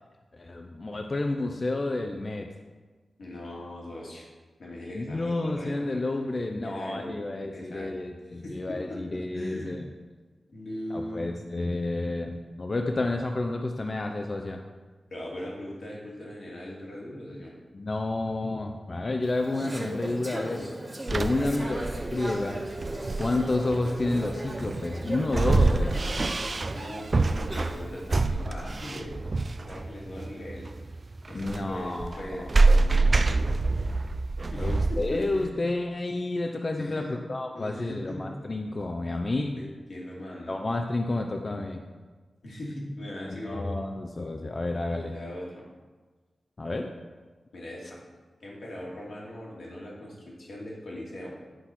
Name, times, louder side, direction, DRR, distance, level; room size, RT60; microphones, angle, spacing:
voice 1, 0.3-2.5 4.9-9.9 10.9-14.6 17.7-20.7 21.1-22.6 23.2-26.0 31.3-32.2 34.6-39.6 40.5-41.8 43.3-45.1 46.6-46.9, left 2 dB, 40° left, 4 dB, 0.6 m, -30 dB
voice 2, 3.2-4.2 4.6-5.8 6.6-7.2 7.5-7.9 8.3-9.8 10.5-11.3 15.1-17.5 21.4-21.9 26.7-29.2 29.7-30.7 31.3-33.6 34.5-35.5 36.8-37.2 37.5-38.2 39.6-40.6 42.4-43.7 44.9-45.6 47.5-48.0 48.4-51.3, left 1 dB, 70° left, -4 dB, 2.5 m, -39 dB
Conversation / Chatter, 19.2-28.1, right 1 dB, 25° right, 1.5 m, -38 dB
sound 1, 21.1-35.5, right 3 dB, 45° right, 0.4 m, -26 dB
10.0 x 4.2 x 5.9 m, 1.3 s
wide cardioid pair, 75°, 0 cm